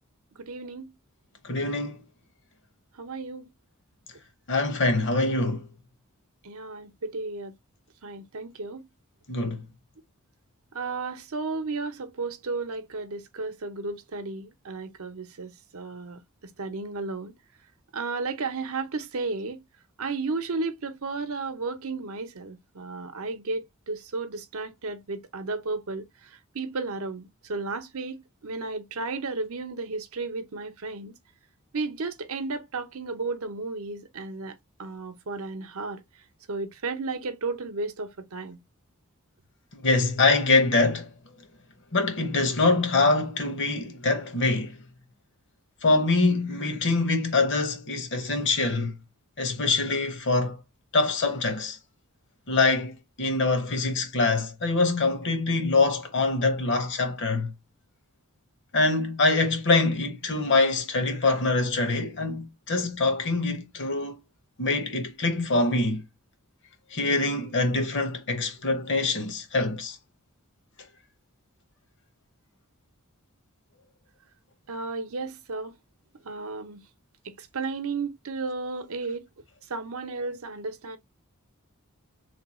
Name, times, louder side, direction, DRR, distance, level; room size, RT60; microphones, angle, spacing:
voice 1, 0.4-0.9 3.0-3.4 6.4-7.5 8.0-8.9 10.7-16.2 16.6-17.3 17.9-19.6 20.0-26.1 26.5-31.1 31.7-36.0 36.5-38.6 74.7-75.7 76.2-76.8 77.2-79.2 79.7-81.0, right 3 dB, 75° right, 0.7 m, -33 dB
voice 2, 1.4-2.0 4.5-5.7 9.3-9.6 39.7-41.1 41.9-44.8 45.8-49.0 49.4-50.6 50.9-51.8 52.5-57.5 58.7-64.2 64.6-66.0 66.9-70.0, left 3 dB, 55° left, 1.0 m, -24 dB
3.3 x 2.3 x 4.2 m
head